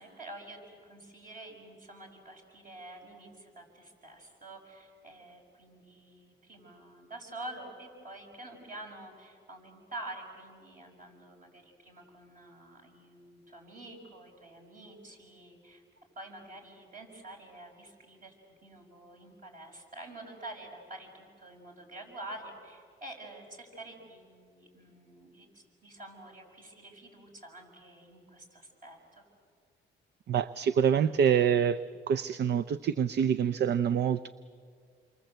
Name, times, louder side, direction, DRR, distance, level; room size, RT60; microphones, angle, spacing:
voice 1, 0.0-15.8 16.1-18.3 18.6-29.2, right 1 dB, 40° right, 6.7 m, -47 dB
voice 2, 30.3-31.8 32.1-34.3, right 8 dB, 55° right, 0.6 m, -26 dB
28.5 x 24.5 x 7.9 m
cardioid pair, 90°, 20 cm